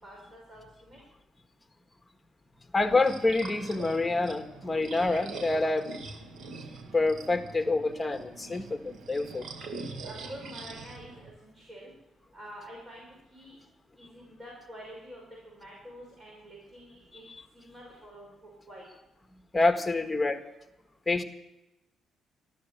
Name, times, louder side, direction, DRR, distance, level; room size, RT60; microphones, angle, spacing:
voice 1, 0.0-1.0 10.0-11.9 12.3-13.6 14.0-17.2 17.5-18.8, equal, 30° right, -3 dB, 5.7 m, -47 dB
voice 2, 2.7-5.9 6.9-9.4 19.5-20.4 21.1-21.2, left 3 dB, 15° left, 7 dB, 1.6 m, -27 dB
sound 1, 2.8-11.3, right 3 dB, 65° right, 1.8 m, -44 dB
13.5 x 12.5 x 6.8 m, 0.97 s
cardioid pair, 90°, 0 cm